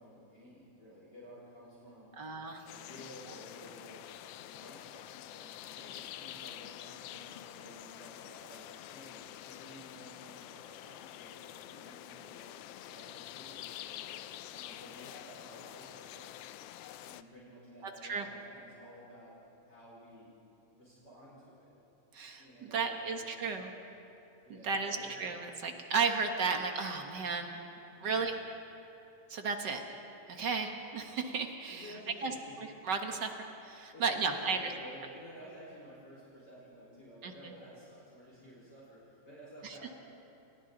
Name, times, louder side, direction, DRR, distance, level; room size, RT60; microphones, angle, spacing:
voice 1, 0.0-2.1 2.7-4.1 4.4-14.2 14.5-16.5 17.1-19.3 19.7-20.3 20.7-21.7 22.3-23.4 24.4-25.1 27.7-28.1 31.7-32.6 33.9-40.0, equal, 35° left, -8 dB, 5.3 m, -53 dB
voice 2, 2.2-2.7 17.8-18.3 22.1-23.7 24.5-27.6 28.0-28.4 29.3-29.8 30.3-31.9 32.2-32.3 32.8-34.7 37.2-37.5 39.6-39.8, right 5 dB, 50° right, 4 dB, 1.5 m, -34 dB
sound 1, 2.7-17.2, left 13 dB, 85° left, 1.3 m, -47 dB
29.5 x 27.5 x 4.0 m, 2.9 s
omnidirectional pair, 3.4 m